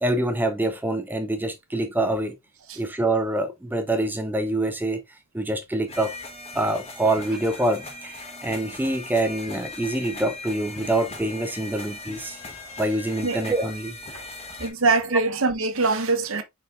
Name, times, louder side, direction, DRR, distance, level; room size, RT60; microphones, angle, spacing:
voice 1, 0.0-2.4 2.8-5.0 5.3-6.1 6.5-12.4 12.8-14.0 15.1-15.2, right 1 dB, 10° right, 0.4 m, -25 dB
sound 1, 5.9-14.7, left 2 dB, 30° left, 1.1 m, -39 dB
voice 2, 14.6-16.4, right 3 dB, 70° right, 0.8 m, -23 dB
4.8 x 4.3 x 2.4 m
head